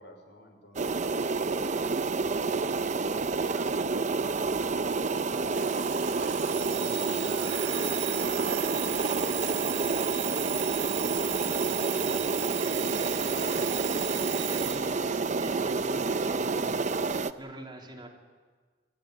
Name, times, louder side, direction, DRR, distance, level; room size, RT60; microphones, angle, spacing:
voice 1, 0.0-1.4 1.8-2.2 2.4-5.4 6.5-10.2 10.8-12.8, left 1 dB, 80° left, 4 dB, 5.3 m, -50 dB
sound 1, 0.8-17.3, right 4 dB, 40° right, 0.7 m, -29 dB
Alarm, 5.5-14.8, right 12 dB, 80° right, 1.6 m, -36 dB
voice 2, 14.0-16.9 17.4-18.1, right 1 dB, 25° right, 0 dB, 3.3 m, -44 dB
29.0 x 14.5 x 9.2 m, 1.5 s
head